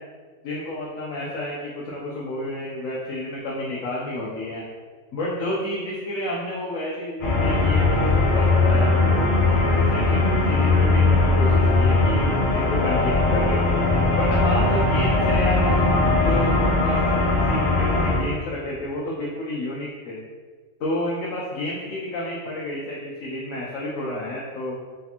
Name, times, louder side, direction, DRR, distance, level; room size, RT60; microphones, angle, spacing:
voice 1, 0.4-4.6 5.1-13.6 14.2-16.6 16.8-20.2 20.8-24.8, left 1 dB, 75° left, -4 dB, 1.0 m, -30 dB
sound 1, 7.2-18.2, left 2 dB, 45° left, 0.8 m, -19 dB
4.0 x 3.4 x 2.8 m, 1.5 s
omnidirectional pair, 1.4 m